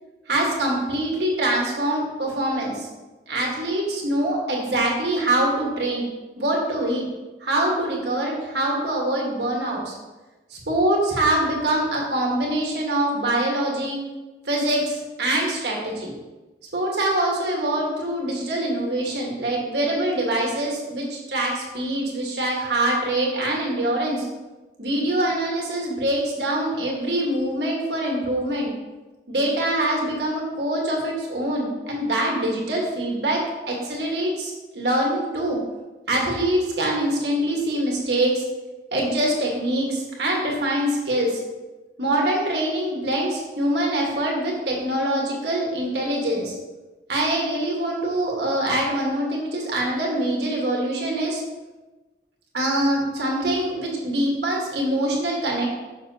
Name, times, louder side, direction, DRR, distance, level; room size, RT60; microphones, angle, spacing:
voice 1, 0.3-2.9 3.3-6.0 6.4-7.0 7.4-9.9 10.5-14.0 14.4-16.1 16.7-24.3 24.8-28.7 29.3-33.4 33.7-35.6 36.1-38.4 38.9-41.4 42.0-46.5 47.1-51.4 52.5-55.7, right 1 dB, 70° right, -1 dB, 1.5 m, -24 dB
6.6 x 6.0 x 2.8 m, 1.2 s
head